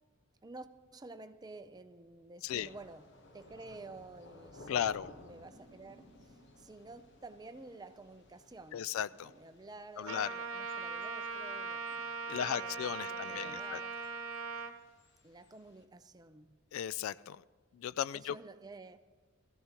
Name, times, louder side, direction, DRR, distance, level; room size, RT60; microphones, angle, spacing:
voice 1, 0.9-3.1 3.3-14.0 15.2-16.6 18.1-19.0, right 3 dB, 20° right, 0.5 m, -51 dB
Thunder / Rain, 2.5-15.9, left 2 dB, 55° left, 1.1 m, -59 dB
voice 2, 4.7-5.1 8.7-9.3 10.0-10.3 12.3-13.8 16.7-17.4 17.7-18.4, left 9 dB, 75° left, 0.3 m, -36 dB
sound 1, 5.1-8.1, equal, 15° left, 5.6 m, -64 dB
Trumpet, 10.1-14.7, right 4 dB, 85° right, 0.9 m, -40 dB
20.5 x 14.5 x 3.0 m
head